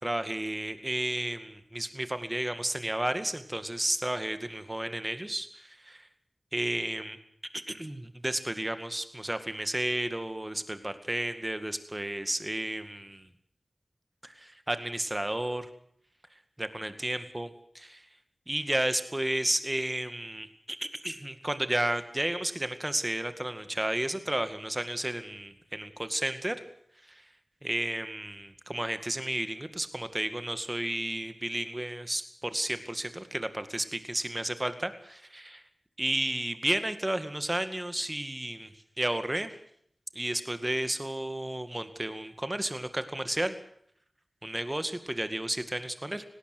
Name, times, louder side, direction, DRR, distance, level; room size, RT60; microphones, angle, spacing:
voice 1, 0.0-6.1 6.5-7.2 7.5-13.3 14.2-15.7 16.6-17.5 17.7-18.1 18.5-26.6 27.1-27.2 27.6-35.6 36.0-39.5 40.2-43.6 44.4-46.2, right 1 dB, 20° right, 10 dB, 2.1 m, -32 dB
18.5 x 18.0 x 7.8 m, 0.67 s
wide cardioid pair, 65°, 0 cm